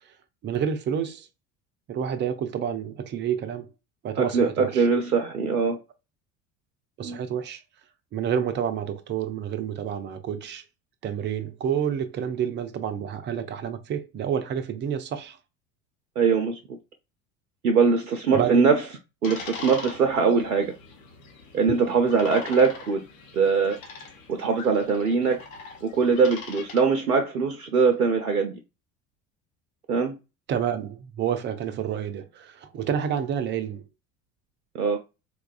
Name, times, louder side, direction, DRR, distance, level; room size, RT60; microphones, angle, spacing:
voice 1, 0.4-1.3 1.9-3.7 4.0-4.9 7.0-7.6 8.1-10.6 11.0-15.4 18.3-18.6 30.5-33.8, right 8 dB, 25° right, 0.4 m, -29 dB
voice 2, 4.2-5.8 7.0-7.2 16.2-16.6 17.6-18.8 19.2-20.7 21.5-23.0 23.3-23.8 24.3-25.4 25.8-28.6 29.9-30.1 34.7-35.0, right 5 dB, 85° right, 0.5 m, -22 dB
sound 1, 19.2-26.8, left 4 dB, 65° left, 1.1 m, -42 dB
4.1 x 2.3 x 2.3 m
figure-of-eight pair, 65°, 43 cm